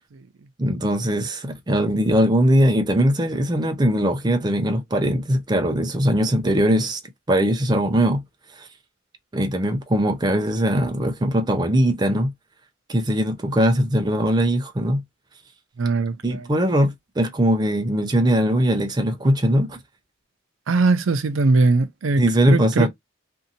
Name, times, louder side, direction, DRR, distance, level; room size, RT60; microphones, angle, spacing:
voice 1, 0.6-7.0 7.3-8.2 8.5-8.7 9.3-12.3 12.9-15.0 16.2-19.8 22.2-22.9, equal, 20° right, 0.5 m, -20 dB
voice 2, 15.8-16.5 20.7-22.9, right 3 dB, 80° right, 0.5 m, -20 dB
2.6 x 2.6 x 2.6 m
head